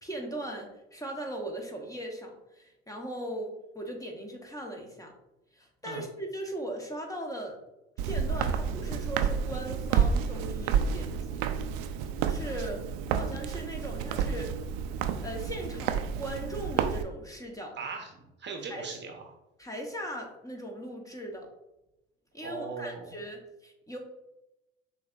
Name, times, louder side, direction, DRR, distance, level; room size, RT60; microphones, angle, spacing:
voice 1, 0.0-5.1 5.5-7.6 8.0-11.5 12.2-12.8 13.1-14.5 15.2-17.8 18.7-18.9 19.6-21.5 22.3-24.0, right 1 dB, 10° left, 1 dB, 1.0 m, -39 dB
Walk footsteps, 8.0-17.0, right 7 dB, 60° right, 0.5 m, -30 dB
voice 2, 17.7-18.1 18.4-19.2 22.4-23.2, right 5 dB, 35° right, 3 dB, 0.8 m, -38 dB
6.4 x 2.8 x 2.5 m, 0.94 s
hypercardioid pair, 65°, 32 cm